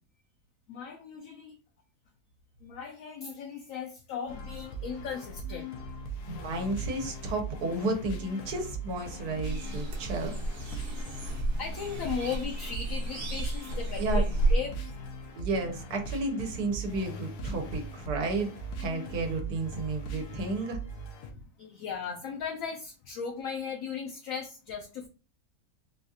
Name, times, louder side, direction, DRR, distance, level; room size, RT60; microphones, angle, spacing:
voice 1, 0.7-1.6 2.6-5.7 11.5-14.9 15.3-15.5 21.3-25.1, left 6 dB, 70° left, 3 dB, 0.9 m, -37 dB
sound 1, 4.3-21.3, right 2 dB, 85° left, 1.2 m, -40 dB
voice 2, 6.3-10.3 14.0-14.2 15.4-20.8, right 2 dB, 80° right, 4 dB, 1.3 m, -32 dB
sound 2, 9.4-14.6, right 1 dB, 55° right, 1.2 m, -31 dB
3.9 x 2.4 x 2.7 m, 0.35 s
omnidirectional pair, 1.7 m